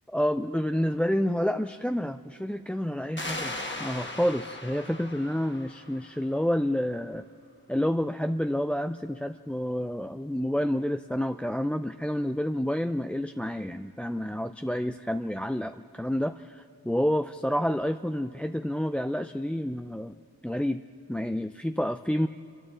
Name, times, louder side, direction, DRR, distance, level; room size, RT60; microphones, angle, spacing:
voice 1, 0.1-3.5 3.8-7.2 7.7-20.1 20.4-20.8 21.1-22.3, equal, 5° left, 9 dB, 0.4 m, -29 dB
sound 1, 3.2-6.5, left 1 dB, 30° left, 1.7 m, -38 dB
28.5 x 12.5 x 7.6 m, 2.7 s
wide cardioid pair, 40°, 37 cm